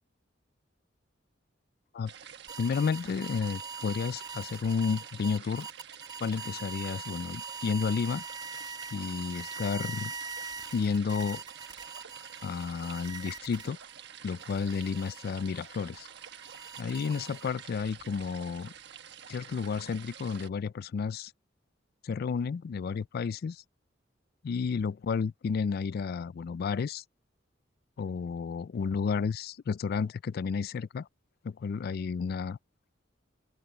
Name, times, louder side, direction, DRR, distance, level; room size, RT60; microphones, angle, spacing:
sound 1, 2.1-20.5, right 8 dB, 60° right, 1.3 m, -48 dB
sound 2, 2.5-13.9 14.4-17.7, right 5 dB, 25° right, 1.8 m, -43 dB
voice 1, 2.6-5.7 6.2-8.2 8.9-10.1 10.7-11.4 12.4-13.8 14.2-16.1 16.8-18.7 19.3-21.3 22.0-23.6 24.4-27.0 28.0-31.1 31.4-32.6, left 5 dB, 55° left, 0.3 m, -31 dB
sound 3, 17.6-21.4, equal, 5° left, 6.2 m, -68 dB
open air
head